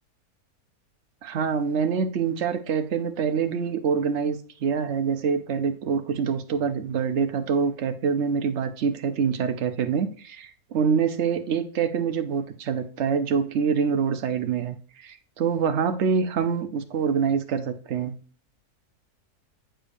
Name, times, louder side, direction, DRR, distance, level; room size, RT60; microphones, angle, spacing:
voice 1, 1.2-18.2, right 6 dB, 55° right, 0.9 m, -25 dB
9.0 x 5.0 x 2.6 m
omnidirectional pair, 1.7 m